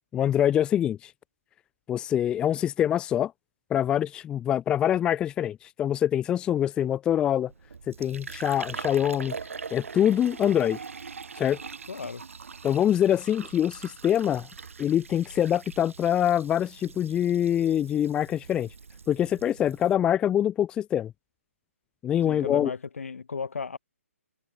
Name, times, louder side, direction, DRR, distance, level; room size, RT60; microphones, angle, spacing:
voice 1, 0.1-1.1 1.9-3.3 3.7-7.5 7.9-9.3 9.7-10.8 11.4-11.6 12.6-14.5 14.8-18.7 19.1-21.1 22.0-22.7, left 10 dB, 10° left, 0.6 m, -24 dB
Fill (with liquid), 7.5-19.9, right 5 dB, 65° right, 6.4 m, -42 dB
voice 2, 11.9-12.2 22.2-23.8, left 5 dB, 70° left, 1.7 m, -35 dB
figure-of-eight pair, 140°, 8 cm